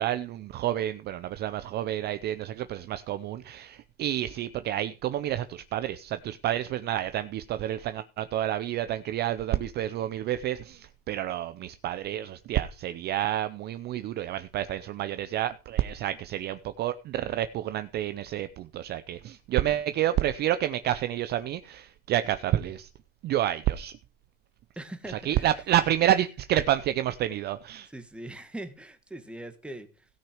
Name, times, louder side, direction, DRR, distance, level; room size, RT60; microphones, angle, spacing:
voice 1, 0.0-22.9 23.2-23.9 25.1-27.9, right 12 dB, 35° right, 0.6 m, -29 dB
voice 2, 24.8-25.5 27.9-30.1, right 1 dB, 5° right, 1.3 m, -41 dB
17.0 x 6.2 x 4.9 m
supercardioid pair, 135°, 31 cm